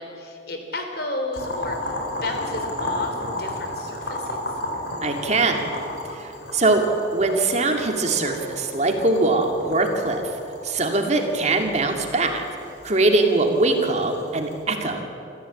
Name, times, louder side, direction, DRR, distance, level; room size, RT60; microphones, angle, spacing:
voice 1, 0.0-1.9 2.2-4.6, left 2 dB, 60° left, 4 dB, 3.5 m, -32 dB
Boiling, 1.3-14.6, left 1 dB, 80° left, 4.9 m, -33 dB
voice 2, 5.0-5.6 6.1-6.8 7.1-10.4 10.6-12.4 12.8-15.0, right 2 dB, 40° right, 3 dB, 2.4 m, -22 dB
27.0 x 14.5 x 8.5 m, 2.7 s
head